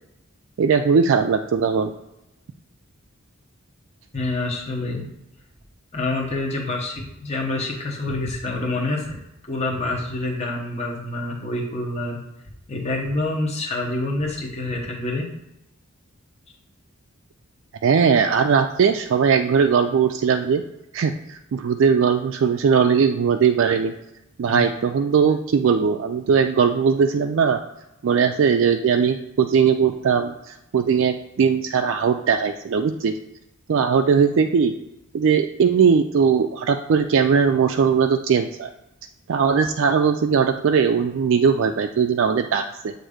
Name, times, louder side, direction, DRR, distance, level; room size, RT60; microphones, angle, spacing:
voice 1, 0.6-1.9 17.8-20.6 20.9-23.9 24.4-27.6 28.0-33.1 33.7-34.7 35.1-38.7 39.3-42.9, right 6 dB, 60° right, 5 dB, 0.3 m, -19 dB
voice 2, 4.1-5.1 5.9-9.2 9.5-12.2 12.7-15.3 24.5-24.7, left 2 dB, 30° left, -2 dB, 0.9 m, -27 dB
7.6 x 2.7 x 4.9 m, 0.89 s
head